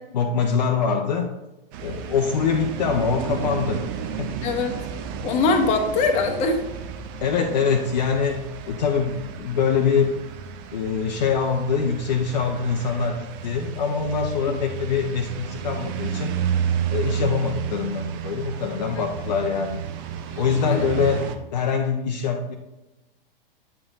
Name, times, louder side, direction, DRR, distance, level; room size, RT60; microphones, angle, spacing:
voice 1, 0.1-1.3 1.8-3.8 4.2-4.3 7.2-10.2 10.7-16.4 16.9-19.8 20.4-22.6, left 6 dB, 45° left, 3 dB, 0.7 m, -24 dB
sound 1, 1.7-21.4, right 8 dB, 25° right, 0.5 m, -32 dB
voice 2, 4.4-4.8 5.2-6.6 14.5-14.6 20.3-20.9, left 4 dB, 25° left, 4 dB, 1.0 m, -23 dB
9.5 x 6.7 x 2.6 m, 1.0 s
figure-of-eight pair, 110°, 29 cm